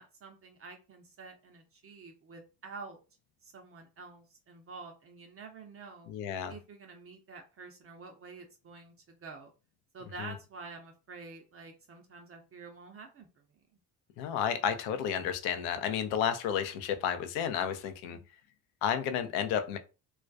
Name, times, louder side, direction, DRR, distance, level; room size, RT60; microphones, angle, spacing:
voice 1, 0.0-3.0 3.4-6.1 6.5-9.5 9.9-13.4 18.0-18.2, right 4 dB, 30° right, 0.5 m, -48 dB
voice 2, 6.1-6.5 10.2-10.3 14.2-18.2 18.8-19.8, left 8 dB, 65° left, 0.6 m, -31 dB
2.3 x 2.2 x 2.5 m
hypercardioid pair, 60°, 48 cm